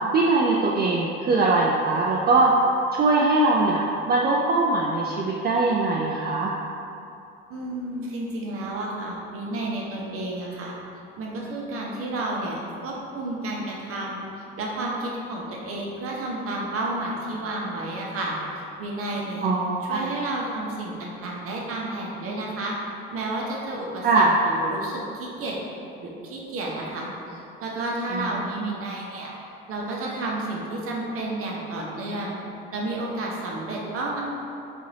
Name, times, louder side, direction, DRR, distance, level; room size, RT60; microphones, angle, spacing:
voice 1, 0.1-2.5 3.0-6.5 19.4-20.0 24.0-24.3 28.1-28.8, right 3 dB, 35° right, -3 dB, 0.4 m, -22 dB
voice 2, 7.5-10.8 11.2-14.3 14.6-19.5 19.8-22.7 23.1-25.6 26.0-29.3 29.7-32.3 32.7-34.2, right 2 dB, 50° right, -2 dB, 0.8 m, -31 dB
3.8 x 2.5 x 2.9 m, 2.7 s
hypercardioid pair, 60°, 29 cm